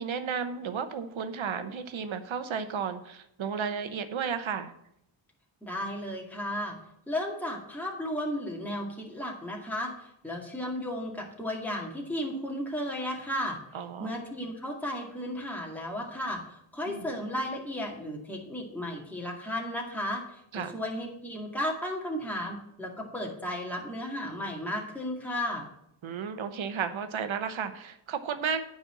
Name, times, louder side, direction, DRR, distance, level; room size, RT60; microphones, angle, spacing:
voice 1, 0.0-4.7 13.7-14.1 16.9-17.1 20.5-20.7 26.0-28.6, right 6 dB, 75° right, 10 dB, 0.9 m, -33 dB
voice 2, 5.6-6.8 7.1-13.6 14.0-25.7, left 1 dB, 5° left, -2 dB, 2.1 m, -34 dB
9.8 x 4.3 x 7.3 m, 0.75 s
cardioid pair, 80°, 47 cm